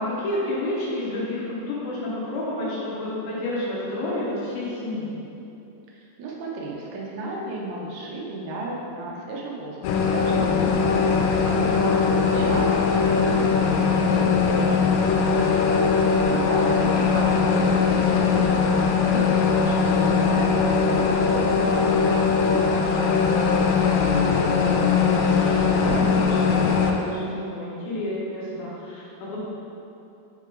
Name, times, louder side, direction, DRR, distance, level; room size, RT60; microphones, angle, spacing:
voice 1, 0.0-5.2 11.6-12.1 24.6-29.4, left 1 dB, 75° left, -6 dB, 2.4 m, -30 dB
voice 2, 6.2-10.9 11.3-11.7 12.3-15.5 16.0-23.5, right 2 dB, 75° right, -3 dB, 2.6 m, -34 dB
sound 1, 9.8-26.9, left 5 dB, 90° left, 2.8 m, -20 dB
6.5 x 3.6 x 4.7 m, 2.9 s
omnidirectional pair, 5.0 m